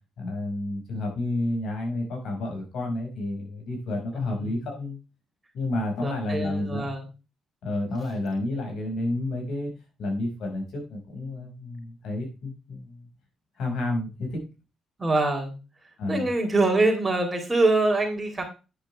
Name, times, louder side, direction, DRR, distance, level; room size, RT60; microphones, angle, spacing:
voice 1, 0.2-5.0 5.5-6.9 7.6-9.7 10.0-13.1 13.6-14.4 16.0-16.3, left 2 dB, 75° left, 2 dB, 5.3 m, -30 dB
voice 2, 4.2-4.6 6.0-7.1 15.0-15.6 16.1-18.4, right 2 dB, 15° right, 1 dB, 3.5 m, -24 dB
9.6 x 8.0 x 3.3 m, 0.30 s
cardioid pair, 90°, 0 cm